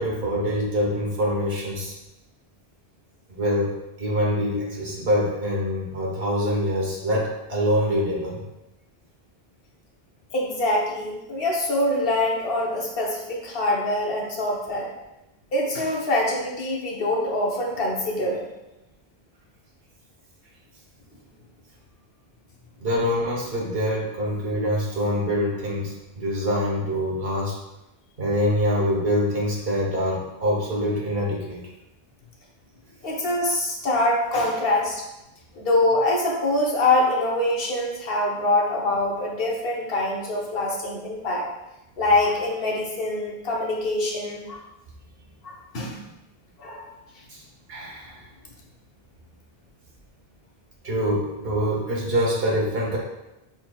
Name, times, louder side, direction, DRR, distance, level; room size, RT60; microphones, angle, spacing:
voice 1, 0.0-1.9 3.3-3.7 4.0-8.4 22.8-27.5 28.2-31.6 47.3-47.4 47.7-48.2 50.8-53.0, equal, 70° right, -3 dB, 1.4 m, -25 dB
voice 2, 10.3-14.9 15.5-18.4 33.0-35.0 35.5-41.5 42.0-44.6 45.4-46.0 46.6-46.8, left 1 dB, 65° left, -2 dB, 1.1 m, -24 dB
5.7 x 3.8 x 2.3 m, 0.94 s
omnidirectional pair, 1.0 m